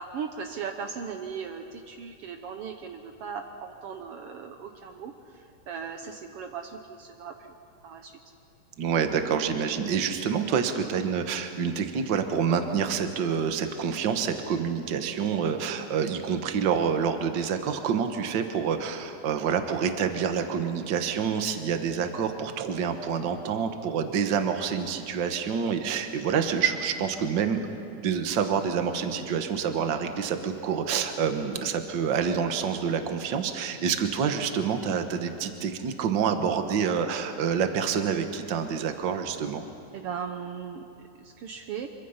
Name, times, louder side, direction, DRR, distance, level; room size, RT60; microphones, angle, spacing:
voice 1, 0.0-7.5 7.8-8.1 39.9-40.8 41.2-41.9, right 6 dB, 90° right, 5 dB, 1.3 m, -38 dB
voice 2, 8.8-27.6 28.0-39.6, right 7 dB, 65° right, 7 dB, 1.1 m, -27 dB
25.5 x 23.5 x 5.7 m, 2.6 s
omnidirectional pair, 3.9 m